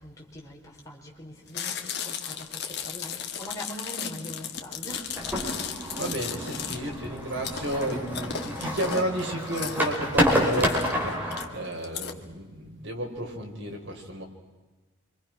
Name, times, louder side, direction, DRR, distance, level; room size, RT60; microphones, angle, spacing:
voice 1, 0.0-5.1, equal, 15° left, -3 dB, 5.3 m, -42 dB
Chewing mastication, 1.5-12.1, left 8 dB, 55° left, 1.9 m, -36 dB
sound 1, 5.2-11.5, equal, 10° right, 4.9 m, -29 dB
voice 2, 5.9-14.2, right 1 dB, 75° right, 1 dB, 5.3 m, -32 dB
28.5 x 25.5 x 6.1 m, 1.2 s
head